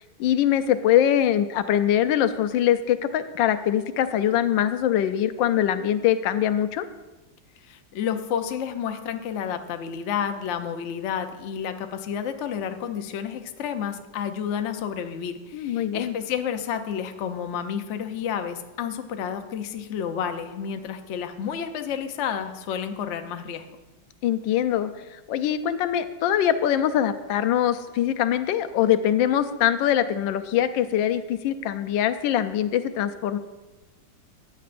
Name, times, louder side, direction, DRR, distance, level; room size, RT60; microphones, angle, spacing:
voice 1, 0.0-6.8 15.5-16.1 24.2-33.4, left 10 dB, 85° left, 10 dB, 1.3 m, -23 dB
voice 2, 7.6-23.7, left 8 dB, 65° left, 7 dB, 0.7 m, -30 dB
14.0 x 9.7 x 2.5 m, 1.1 s
omnidirectional pair, 2.0 m